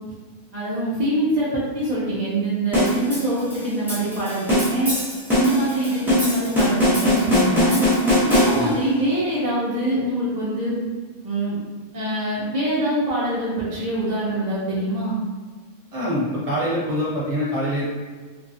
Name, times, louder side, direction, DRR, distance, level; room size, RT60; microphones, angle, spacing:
voice 1, 0.5-4.9 5.3-7.8 8.2-10.8 11.2-11.6 11.9-15.2, right 1 dB, 65° right, -7 dB, 0.4 m, -24 dB
sound 1, 2.7-8.9, left 1 dB, 5° right, 0.4 m, -21 dB
voice 2, 15.9-17.8, equal, 30° right, -7 dB, 0.8 m, -24 dB
2.7 x 2.3 x 2.6 m, 1.4 s
omnidirectional pair, 1.6 m